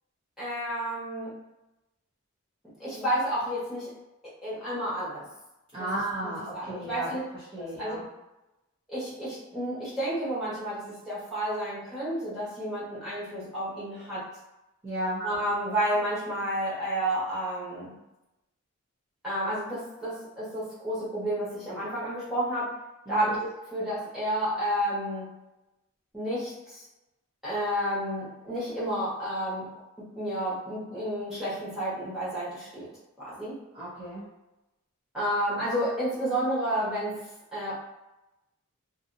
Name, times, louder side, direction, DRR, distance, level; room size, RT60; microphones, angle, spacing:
voice 1, 0.4-1.3 2.8-3.9 4.4-5.2 5.7-5.9 6.2-7.2 7.6-8.0 8.9-14.2 15.2-17.9 19.2-22.7 23.1-25.3 26.1-26.8 27.4-29.6 30.2-32.9 33.2-33.6 35.1-37.2 37.5-37.8, right 1 dB, ahead, -11 dB, 1.2 m, -31 dB
voice 2, 5.7-8.0 14.8-15.2 23.1-23.3 33.7-34.2, right 1 dB, 20° right, -12 dB, 0.7 m, -34 dB
2.6 x 2.6 x 2.6 m, 0.95 s
head